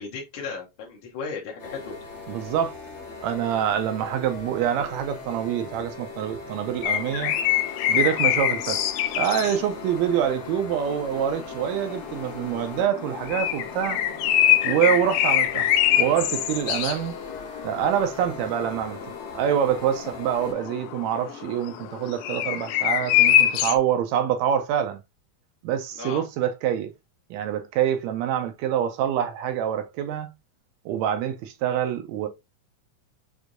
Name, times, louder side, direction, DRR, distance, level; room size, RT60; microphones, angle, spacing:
voice 1, 0.0-2.0 25.9-26.2, left 5 dB, 70° left, 1.2 m, -35 dB
sound 1, 1.6-20.5, left 4 dB, 55° left, 0.8 m, -40 dB
voice 2, 2.3-2.8 3.2-7.3 7.9-8.8 9.1-14.0 14.6-15.7 16.0-17.2 17.6-19.0 19.3-25.0 25.6-26.9 27.3-30.3 30.8-32.3, right 9 dB, 80° right, 1.7 m, -26 dB
sound 2, 6.8-23.8, left 11 dB, 90° left, 2.0 m, -25 dB
6.2 x 2.6 x 2.5 m
omnidirectional pair, 3.4 m